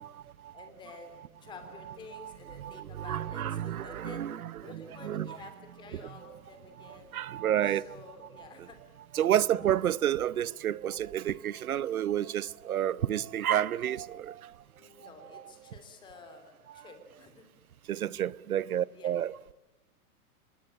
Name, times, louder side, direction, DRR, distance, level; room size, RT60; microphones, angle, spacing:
voice 1, 0.0-0.7 2.1-2.3 2.6-5.4 6.8-7.8 9.1-14.5 17.9-19.5, right 11 dB, 65° right, 0.9 m, -30 dB
voice 2, 0.5-4.3 4.6-7.1 7.6-8.8 9.7-9.8 14.8-17.5 18.9-19.1, left 4 dB, 10° left, 3.0 m, -50 dB
27.0 x 21.0 x 8.7 m
hypercardioid pair, 170°, 46 cm